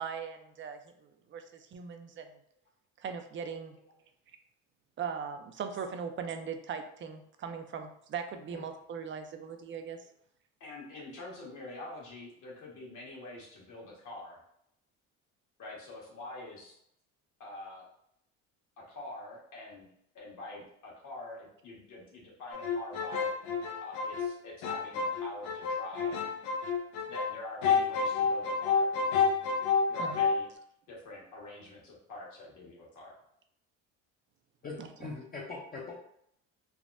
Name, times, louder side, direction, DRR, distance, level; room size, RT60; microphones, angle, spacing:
voice 1, 0.0-2.4 3.0-3.7 5.0-10.0 30.0-30.2 34.8-34.9, right 6 dB, 35° right, 6 dB, 0.4 m, -39 dB
voice 2, 10.6-14.4 15.6-16.7 17.4-17.9 18.9-19.9 20.1-23.3 23.8-26.2 27.1-28.9 29.9-30.5 30.9-33.1, left 2 dB, 60° left, -3 dB, 1.4 m, -45 dB
sound 1, 22.5-27.3 27.6-30.4, left 5 dB, 75° left, 0.6 m, -29 dB
voice 3, 34.6-36.0, left 3 dB, 25° left, -4 dB, 0.6 m, -41 dB
3.4 x 2.1 x 2.5 m, 0.72 s
supercardioid pair, 90°, 34 cm